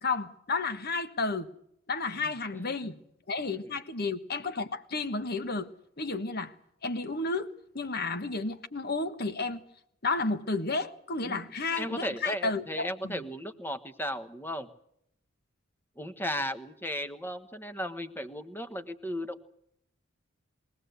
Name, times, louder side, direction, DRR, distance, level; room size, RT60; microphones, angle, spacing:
voice 1, 0.0-1.5 1.9-3.0 3.3-5.7 6.0-6.5 6.8-7.5 7.7-9.6 10.0-13.2, left 3 dB, 50° left, 1.4 m, -32 dB
voice 2, 11.7-14.7 16.0-19.5, equal, 10° left, 1.2 m, -35 dB
23.0 x 17.5 x 8.1 m
head